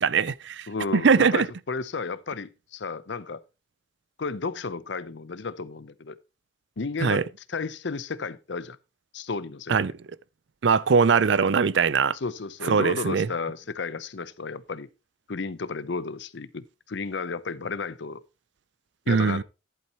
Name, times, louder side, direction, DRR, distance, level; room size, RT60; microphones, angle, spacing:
voice 1, 0.0-0.7 0.9-1.5 7.0-7.2 9.7-9.9 10.6-12.2 12.7-13.3 19.1-19.4, right 5 dB, 65° right, 0.5 m, -21 dB
voice 2, 0.7-3.4 4.2-6.2 6.8-8.8 9.1-9.9 12.2-14.9 15.3-18.2 19.1-19.4, left 4 dB, 65° left, 0.7 m, -33 dB
11.0 x 8.6 x 2.9 m
head